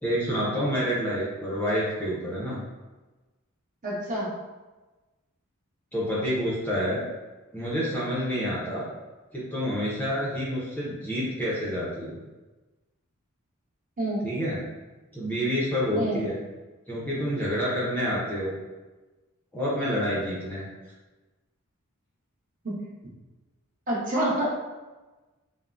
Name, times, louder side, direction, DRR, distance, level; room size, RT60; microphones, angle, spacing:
voice 1, 0.0-2.6 5.9-7.0 7.5-8.9 9.3-12.2 14.2-14.6 15.1-16.4 16.9-18.5 19.5-20.6, equal, 10° left, -7 dB, 0.5 m, -28 dB
voice 2, 3.8-4.3 14.0-14.2 15.9-16.2 22.6-22.8 23.9-24.5, right 1 dB, 40° right, -6 dB, 0.8 m, -27 dB
3.6 x 2.0 x 2.3 m, 1.2 s
head